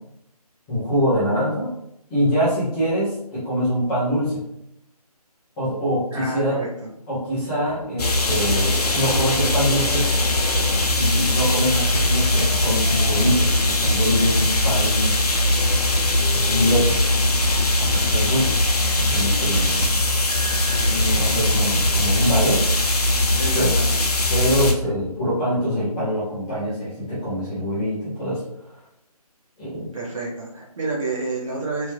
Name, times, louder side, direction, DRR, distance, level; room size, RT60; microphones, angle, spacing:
voice 1, 0.7-1.7 2.1-4.4 5.6-6.6 7.1-10.1 10.9-15.1 16.3-17.0 17.7-18.6 19.0-20.0 20.7-22.7 23.5-23.7 24.3-28.4 29.6-29.9, equal, 5° left, -12 dB, 0.6 m, -24 dB
voice 2, 6.1-6.9 23.4-24.1 29.9-31.9, right 3 dB, 55° right, -4 dB, 1.3 m, -29 dB
sound 1, 8.0-24.7, left 1 dB, 75° left, 0.7 m, -20 dB
3.4 x 2.5 x 3.2 m, 0.80 s
figure-of-eight pair, 165°, 20 cm